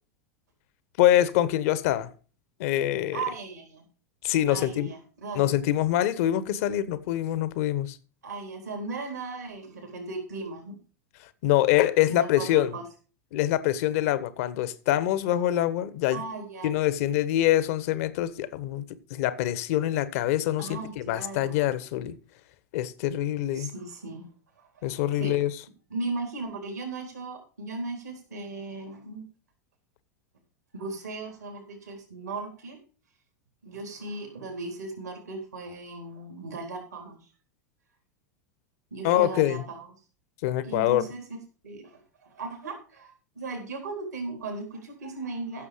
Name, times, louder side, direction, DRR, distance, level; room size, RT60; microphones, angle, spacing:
voice 1, 1.0-2.1 2.6-3.2 4.2-4.9 5.3-8.0 11.4-12.7 13.3-16.2 16.6-18.8 19.1-22.2 22.7-23.7 24.8-25.5 39.0-39.6 40.4-41.0, left 13 dB, 55° left, 1.3 m, -25 dB
voice 2, 3.1-3.9 4.5-5.5 8.2-10.8 12.1-12.8 16.1-16.7 20.6-21.7 23.5-24.3 24.6-25.3 25.9-29.3 30.7-32.8 33.6-37.3 38.9-39.9 40.6-41.4 41.6-45.7, right 3 dB, 75° right, 3.9 m, -37 dB
15.0 x 6.9 x 5.1 m
figure-of-eight pair, 90°, 9 cm